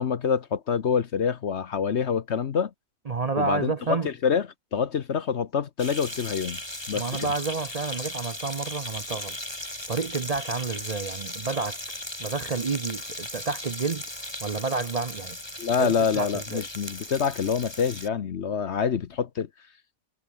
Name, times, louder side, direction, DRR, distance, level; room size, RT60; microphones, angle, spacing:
voice 1, 0.0-2.7 3.4-6.6 6.9-7.3 15.6-19.5, left 7 dB, 50° left, 1.0 m, -26 dB
voice 2, 3.1-4.1 6.9-9.4 9.9-11.8 12.2-14.0 14.4-15.4 15.8-16.6, right 4 dB, 40° right, 0.5 m, -30 dB
sound 1, 5.8-18.1, left 1 dB, 15° left, 4.0 m, -37 dB
omnidirectional pair, 1.7 m